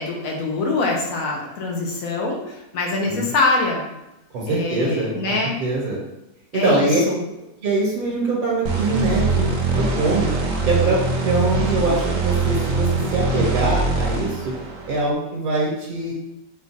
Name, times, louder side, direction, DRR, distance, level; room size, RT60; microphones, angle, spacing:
voice 1, 0.0-3.8 4.5-5.6 6.5-7.2, left 3 dB, 75° left, -1 dB, 1.3 m, -24 dB
voice 2, 4.3-5.3 5.6-6.0 6.5-7.0 7.6-10.3 10.7-14.5 14.9-16.1, right 2 dB, 85° right, -5 dB, 1.6 m, -23 dB
sound 1, 8.7-15.1, right 3 dB, 70° right, 1.1 m, -22 dB
5.0 x 2.3 x 4.2 m, 0.92 s
omnidirectional pair, 1.5 m